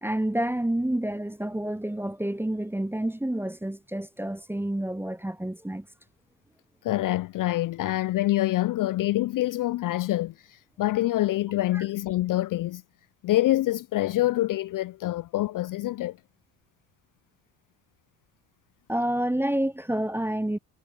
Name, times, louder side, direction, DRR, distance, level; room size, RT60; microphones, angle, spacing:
voice 1, 0.0-5.9 11.7-11.8 18.9-20.6, right 1 dB, 5° right, 0.7 m, -29 dB
voice 2, 6.8-12.8 13.2-16.2, left 16 dB, 45° left, 0.5 m, -26 dB
hypercardioid pair, 55°, 49 cm